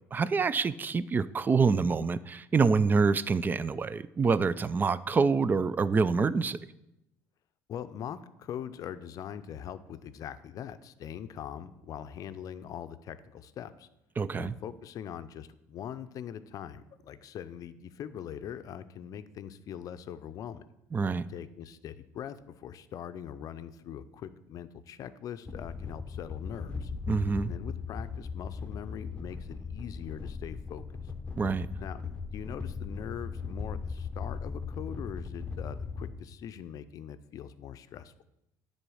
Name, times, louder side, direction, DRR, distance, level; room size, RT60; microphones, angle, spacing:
voice 1, 0.1-6.6 14.2-14.5 20.9-21.3 27.1-27.5 31.4-31.7, right 4 dB, 25° right, 17 dB, 0.4 m, -26 dB
voice 2, 7.7-13.9 14.3-20.6 21.3-26.9 27.4-30.8 31.8-32.0 32.3-38.1, left 9 dB, 55° left, 13 dB, 0.5 m, -42 dB
sound 1, 25.4-36.1, left 5 dB, 15° left, 1.0 m, -38 dB
9.8 x 4.2 x 6.3 m, 0.87 s
cardioid pair, 100°, 7 cm